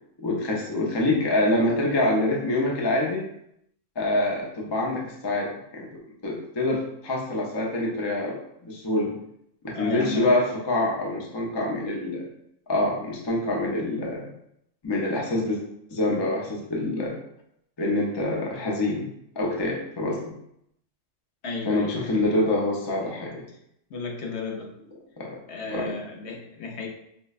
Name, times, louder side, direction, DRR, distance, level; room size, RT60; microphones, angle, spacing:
voice 1, 0.2-3.2 4.0-5.9 6.2-8.4 8.6-9.1 9.6-12.3 12.7-14.3 14.8-15.6 15.9-17.2 17.8-20.2 21.7-23.4 25.2-25.4 25.7-25.9, left 1 dB, 40° left, -2 dB, 0.3 m, -26 dB
voice 2, 9.7-10.4 21.4-22.1 23.9-24.7 25.5-26.9, left 3 dB, 65° left, 1 dB, 0.8 m, -33 dB
5.0 x 2.1 x 2.4 m, 0.76 s
omnidirectional pair, 1.3 m